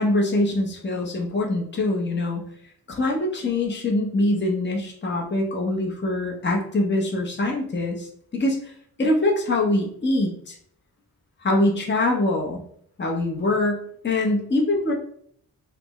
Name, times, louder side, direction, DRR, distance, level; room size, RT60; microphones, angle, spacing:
voice 1, 0.0-2.4 2.9-8.7 9.0-10.6 11.4-12.6 13.0-14.9, left 2 dB, 30° left, 0 dB, 0.8 m, -24 dB
5.8 x 2.1 x 3.0 m, 0.64 s
wide cardioid pair, 95°, 38 cm